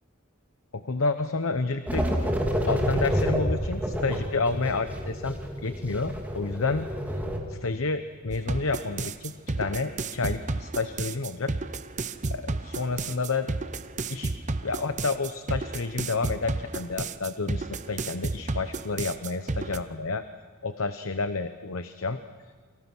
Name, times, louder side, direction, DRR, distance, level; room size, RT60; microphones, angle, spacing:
voice 1, 0.7-2.1 2.7-5.4 5.6-7.2 7.5-11.5 12.3-13.5 14.1-14.3 14.6-20.2 20.6-22.2, left 3 dB, 75° left, 10 dB, 0.9 m, -30 dB
sound 1, 1.9-7.4, equal, 10° right, 2.8 m, -29 dB
sound 2, 8.3-19.8, right 3 dB, 35° right, 0.7 m, -32 dB
29.0 x 24.0 x 6.2 m, 1.5 s
head